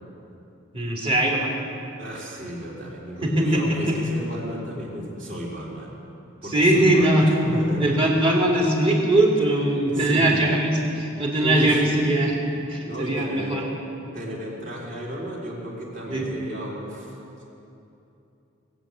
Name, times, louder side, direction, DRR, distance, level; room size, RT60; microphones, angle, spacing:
voice 1, 0.7-1.5 3.2-4.0 6.5-7.3 7.8-12.3 12.7-13.6 16.1-16.3, right 1 dB, 30° right, -2 dB, 2.6 m, -21 dB
voice 2, 2.0-6.0 6.4-8.0 9.9-10.4 11.4-12.1 12.9-13.6 14.1-17.4, right 1 dB, 45° right, -4 dB, 3.7 m, -32 dB
19.5 x 8.0 x 8.7 m, 2.9 s
head